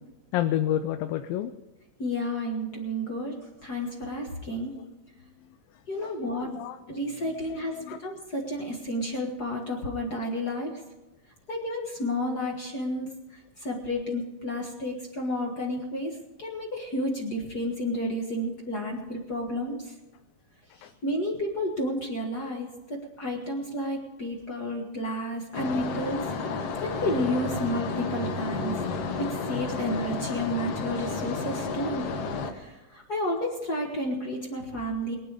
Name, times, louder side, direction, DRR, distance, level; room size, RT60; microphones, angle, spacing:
voice 1, 0.3-1.5 4.8-4.9 6.0-6.8 7.2-8.0 20.8-20.9, left 12 dB, 80° left, 9 dB, 2.3 m, -30 dB
voice 2, 2.0-3.3 3.6-4.7 5.9-6.5 6.9-7.7 8.0-10.7 11.5-13.1 13.6-16.1 16.4-19.8 21.0-26.2 26.8-28.7 29.2-32.1 32.5-35.1, left 1 dB, 45° left, 1 dB, 1.3 m, -31 dB
sound 1, 25.5-32.5, left 4 dB, 60° left, 1.6 m, -31 dB
22.0 x 8.8 x 4.9 m, 1.1 s
omnidirectional pair, 4.1 m